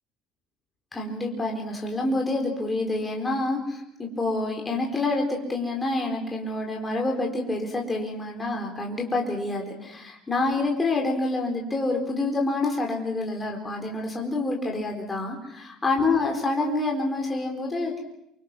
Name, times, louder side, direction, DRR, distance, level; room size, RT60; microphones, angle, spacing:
voice 1, 0.9-18.0, left 2 dB, 10° left, 0 dB, 4.3 m, -27 dB
28.0 x 24.5 x 6.2 m, 0.78 s
cardioid pair, 170°, 0 cm